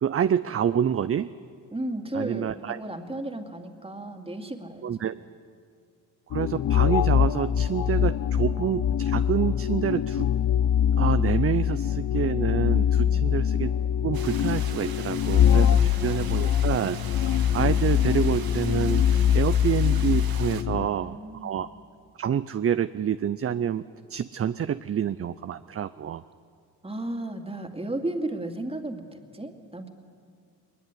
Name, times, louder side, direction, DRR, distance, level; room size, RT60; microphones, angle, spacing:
voice 1, 0.0-1.3 2.1-2.8 4.8-5.2 6.3-10.3 11.0-13.7 14.0-17.2 17.5-21.7 22.2-23.8 24.1-26.2, right 9 dB, 35° right, 13 dB, 0.6 m, -28 dB
voice 2, 1.7-5.2 12.9-13.3 15.7-16.4 20.7-21.7 26.8-29.9, right 1 dB, 15° right, 5 dB, 2.5 m, -35 dB
sound 1, 6.3-20.9, left 9 dB, 50° left, 0.7 m, -23 dB
sound 2, 14.1-20.6, right 8 dB, 60° right, 1.6 m, -42 dB
21.0 x 20.5 x 9.8 m, 2.2 s
cardioid pair, 85°, 41 cm